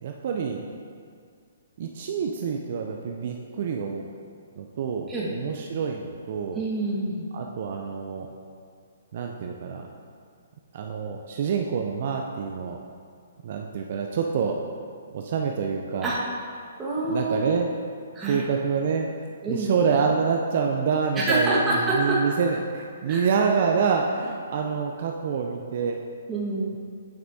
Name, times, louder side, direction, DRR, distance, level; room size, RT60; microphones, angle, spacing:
voice 1, 0.0-0.6 1.8-4.0 4.6-6.6 7.3-8.3 9.1-9.9 10.7-12.8 13.4-14.6 15.1-16.1 17.1-17.7 18.3-19.1 19.5-26.0, right 6 dB, 55° right, 2 dB, 0.5 m, -27 dB
voice 2, 6.5-7.3 16.0-16.2 16.8-17.6 18.1-18.4 19.4-19.7 21.2-22.2 23.1-23.2 26.3-26.7, right 2 dB, 15° right, -7 dB, 1.6 m, -26 dB
8.7 x 6.0 x 2.8 m, 2.2 s
hypercardioid pair, 140°, 0 cm